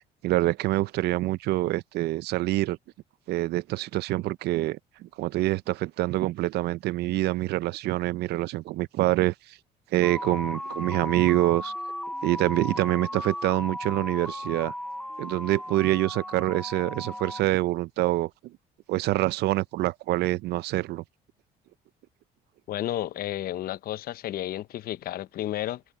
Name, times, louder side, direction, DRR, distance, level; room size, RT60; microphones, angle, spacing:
voice 1, 0.2-2.8 3.3-9.6 9.9-11.7 12.2-14.7 15.2-18.3 18.9-21.0, right 17 dB, 75° right, 0.5 m, -26 dB
sound 1, 10.0-17.4, left 1 dB, 5° left, 0.4 m, -36 dB
voice 2, 22.7-25.8, left 13 dB, 60° left, 0.7 m, -32 dB
cardioid pair, 110°, 17 cm